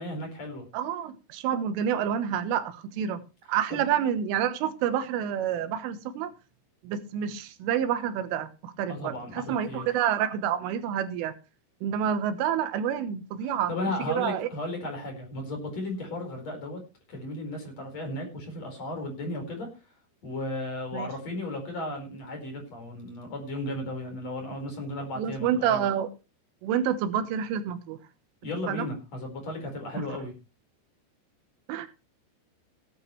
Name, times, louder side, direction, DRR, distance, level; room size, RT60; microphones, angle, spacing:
voice 1, 0.0-0.7 3.7-3.8 8.9-9.9 13.4-16.8 17.1-19.7 20.2-25.9 28.4-30.3, left 1 dB, 35° left, 3 dB, 5.5 m, -35 dB
voice 2, 0.7-3.2 3.5-6.3 6.8-11.3 11.8-13.7 14.1-14.5 20.9-21.1 25.2-26.1 26.6-28.0 28.7-28.9 31.7-31.9, right 9 dB, 85° right, 11 dB, 3.7 m, -28 dB
16.5 x 11.5 x 3.2 m, 0.30 s
omnidirectional pair, 5.6 m